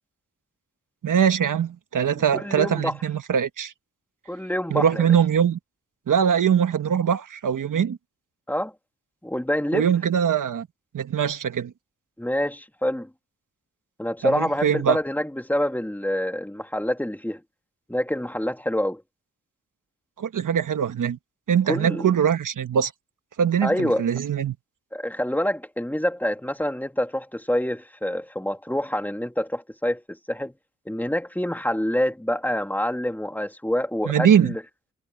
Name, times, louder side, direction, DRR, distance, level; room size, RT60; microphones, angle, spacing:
voice 1, 1.0-3.7 4.7-5.6 6.1-8.0 9.7-10.7 10.9-11.7 14.2-15.0 20.2-21.2 21.5-22.9 23.4-24.6 34.1-34.5, right 8 dB, 75° right, 1.4 m, -22 dB
voice 2, 2.3-2.9 4.3-5.0 8.5-8.7 9.2-9.9 12.2-13.1 14.0-17.4 17.9-19.0 21.7-22.1 23.6-24.0 24.9-30.5 30.9-34.6, left 1 dB, 5° left, 2.9 m, -26 dB
wide cardioid pair, 95°, 32 cm